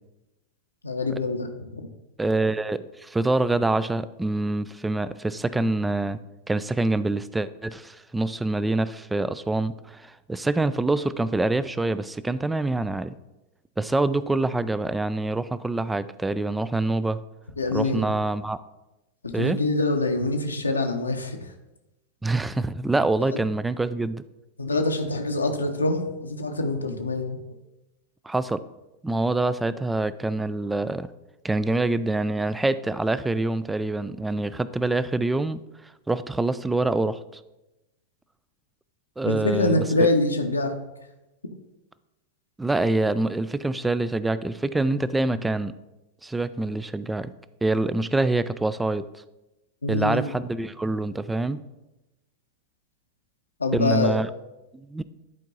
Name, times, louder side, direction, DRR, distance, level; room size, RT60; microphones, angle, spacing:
voice 1, 0.8-1.9 17.6-18.1 19.2-21.5 24.6-27.4 39.3-40.8 49.8-50.3 53.6-54.2, left 2 dB, 80° left, 4 dB, 0.7 m, -25 dB
voice 2, 2.2-6.2 6.5-13.1 13.8-17.2 17.7-18.6 19.3-19.6 22.2-24.2 28.3-28.6 29.0-31.1 31.4-37.2 39.2-40.1 42.6-45.7 46.2-47.3 47.6-49.2 49.9-51.6 53.7-54.3 54.7-55.0, right 2 dB, 10° right, 16 dB, 0.3 m, -25 dB
10.5 x 4.5 x 3.9 m, 0.98 s
figure-of-eight pair, 90°, 0 cm